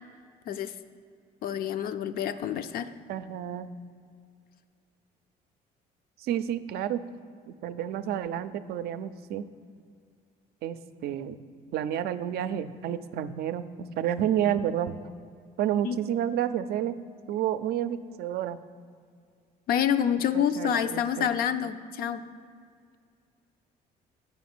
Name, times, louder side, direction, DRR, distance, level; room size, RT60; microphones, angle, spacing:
voice 1, 1.4-2.9 15.8-16.0 19.7-22.2, left 8 dB, 60° left, 11 dB, 0.5 m, -27 dB
voice 2, 3.1-3.7 6.2-7.0 7.5-9.5 10.6-10.8 11.0-11.4 11.7-15.0 15.6-17.0 17.3-18.6 20.3-21.3, right 10 dB, 70° right, 12 dB, 0.4 m, -30 dB
7.2 x 5.3 x 6.0 m, 2.2 s
cardioid pair, 110°, 17 cm